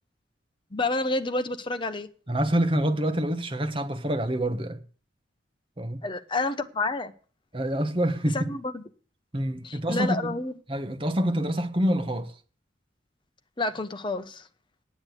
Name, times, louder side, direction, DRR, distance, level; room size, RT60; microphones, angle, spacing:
voice 1, 0.7-2.1 6.0-7.1 8.3-8.8 9.6-10.5 13.6-14.5, left 2 dB, 25° left, 0.9 m, -29 dB
voice 2, 2.3-4.8 5.8-6.0 7.5-8.5 9.3-10.4 10.7-12.3, right 1 dB, 30° right, 1.2 m, -26 dB
8.9 x 8.5 x 8.0 m
head